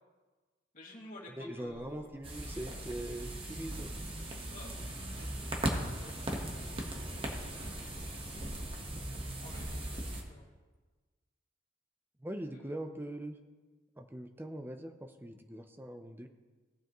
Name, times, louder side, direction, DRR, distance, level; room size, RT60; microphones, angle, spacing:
voice 1, 0.7-2.1 4.5-4.9 5.6-6.2 9.4-10.5, left 1 dB, 45° left, -3 dB, 2.3 m, -52 dB
voice 2, 1.3-4.0 12.2-13.4 14.0-16.3, right 1 dB, 10° right, 6 dB, 0.6 m, -42 dB
sound 1, 1.6-4.4 4.7-4.8 5.2-5.5 6.0-6.1 7.6-8.6 9.3-10.2, right 1 dB, 85° right, 2.6 m, -56 dB
sound 2, 2.2-10.2, right 1 dB, 30° right, 1.3 m, -38 dB
17.5 x 7.5 x 3.1 m, 1.3 s
head